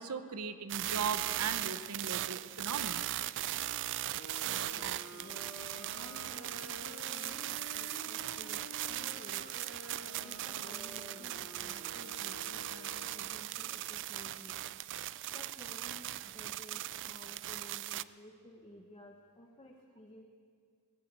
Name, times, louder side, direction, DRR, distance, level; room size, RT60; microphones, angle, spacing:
voice 1, 0.0-3.1, right 5 dB, 80° right, 10 dB, 0.9 m, -38 dB
sound 1, 0.7-18.0, right 14 dB, 55° right, 0.3 m, -39 dB
sound 2, 4.1-13.3, left 2 dB, 65° left, 2.6 m, -50 dB
voice 2, 4.4-5.4 5.9-9.7 10.2-14.6 15.3-20.2, equal, 25° left, 1 dB, 1.1 m, -55 dB
18.5 x 9.4 x 8.3 m, 2.1 s
head